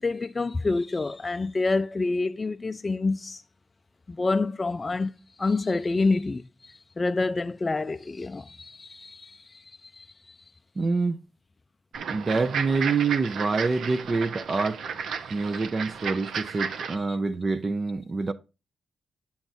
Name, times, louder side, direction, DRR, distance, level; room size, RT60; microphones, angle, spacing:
voice 1, 0.0-3.4 4.1-5.1 5.4-10.4 15.5-15.6 17.1-17.2, left 3 dB, 30° left, 0.3 m, -28 dB
voice 2, 10.8-11.2 12.1-14.8 15.3-18.3, right 4 dB, 35° right, 0.5 m, -26 dB
sound 1, 11.9-17.0, right 6 dB, 80° right, 0.7 m, -33 dB
7.6 x 7.1 x 2.6 m
cardioid pair, 95°, 0 cm